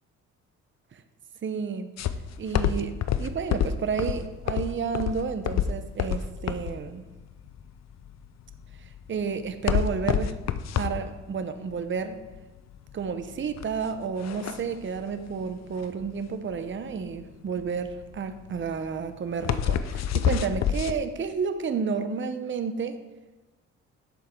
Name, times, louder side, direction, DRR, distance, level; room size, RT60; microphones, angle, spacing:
voice 1, 1.4-1.9 2.4-7.0 9.1-10.3 10.8-12.2 12.9-23.0, right 6 dB, 40° right, 9 dB, 0.9 m, -31 dB
sound 1, 2.0-20.9, left 9 dB, 60° left, 0.6 m, -29 dB
11.0 x 7.8 x 3.8 m, 1.2 s
cardioid pair, 90°, 30 cm